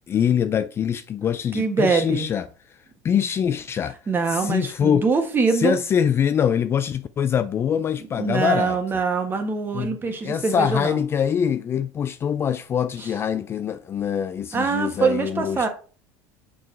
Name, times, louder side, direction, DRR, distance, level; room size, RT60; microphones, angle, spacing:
voice 1, 0.1-2.5 3.0-4.0 4.3-5.0 5.5-8.8 9.7-15.7, left 8 dB, 30° left, 0.3 m, -24 dB
voice 2, 1.5-2.3 4.1-5.8 8.2-11.0 13.0-13.1 14.5-15.7, right 4 dB, 25° right, 1.5 m, -23 dB
5.9 x 4.8 x 4.6 m
supercardioid pair, 125°, 9 cm